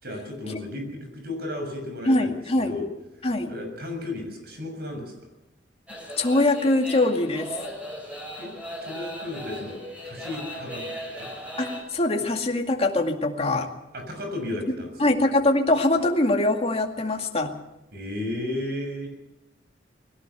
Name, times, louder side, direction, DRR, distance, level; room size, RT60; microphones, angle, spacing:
voice 1, 0.0-2.9 3.5-5.3 8.4-8.5 8.8-11.3 13.9-14.9 17.9-19.2, left 1 dB, 60° right, 4 dB, 6.8 m, -34 dB
voice 2, 2.0-2.8 3.2-3.5 6.2-7.6 11.6-13.7 15.0-17.5, left 2 dB, 35° left, 3 dB, 2.3 m, -23 dB
sound 1, 5.9-11.8, equal, 10° right, 5.7 m, -37 dB
21.5 x 17.5 x 7.0 m, 0.91 s
head